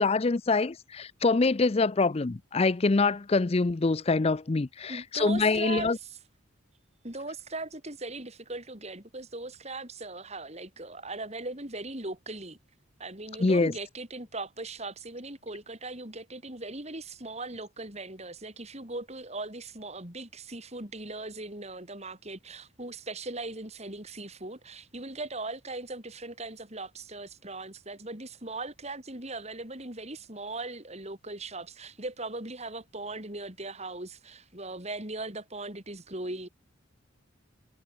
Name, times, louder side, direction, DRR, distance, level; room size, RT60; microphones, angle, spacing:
voice 1, 0.0-6.0 13.4-13.7, left 3 dB, 30° left, 0.5 m, -25 dB
voice 2, 4.9-6.2 7.0-12.6 13.0-36.5, right 2 dB, 30° right, 4.5 m, -39 dB
head